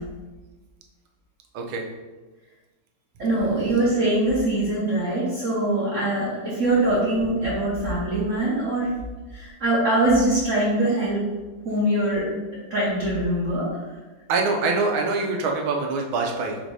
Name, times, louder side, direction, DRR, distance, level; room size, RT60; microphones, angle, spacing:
voice 1, 3.2-8.9 9.3-11.3 11.6-12.2 12.7-13.7, right 1 dB, 50° right, -8 dB, 1.1 m, -23 dB
voice 2, 14.3-16.6, right 3 dB, 85° right, 1 dB, 1.5 m, -24 dB
4.1 x 2.6 x 4.6 m, 1.2 s
omnidirectional pair, 2.2 m